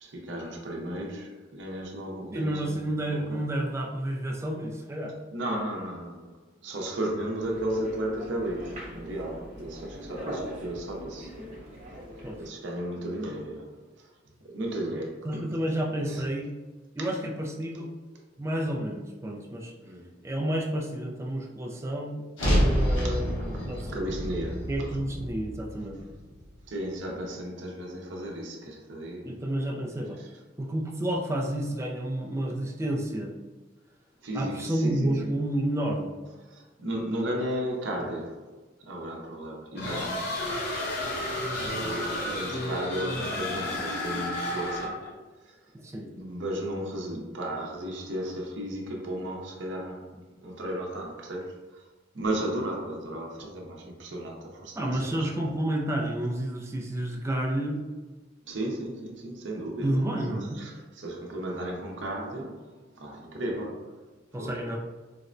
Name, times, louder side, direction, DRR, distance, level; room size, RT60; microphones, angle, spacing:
voice 1, 0.0-3.5 5.3-6.4 6.6-11.3 12.4-13.8 14.4-15.6 16.0-16.2 17.0-17.1 19.8-20.1 23.0-23.6 23.9-25.0 26.7-29.4 30.2-30.3 34.2-35.3 36.5-38.5 38.8-40.4 41.7-45.0 45.4-45.6 46.1-51.8 52.1-55.3 58.5-60.0 60.3-64.0 64.4-64.6, right 1 dB, 70° right, 0.6 m, -35 dB
voice 2, 2.3-5.2 12.2-12.4 15.2-16.5 17.0-17.9 18.4-19.7 20.2-22.2 22.5-24.1 24.7-26.0 29.2-30.2 30.6-33.3 34.3-36.2 45.7-46.1 54.8-57.8 59.8-60.6 64.3-64.8, right 1 dB, 15° right, 0.3 m, -30 dB
sound 1, 7.4-12.5, equal, 40° right, 0.9 m, -41 dB
sound 2, 22.4-26.6, equal, 85° left, 1.1 m, -28 dB
sound 3, 39.8-45.1, left 1 dB, 55° left, 0.5 m, -32 dB
4.1 x 2.1 x 2.5 m
head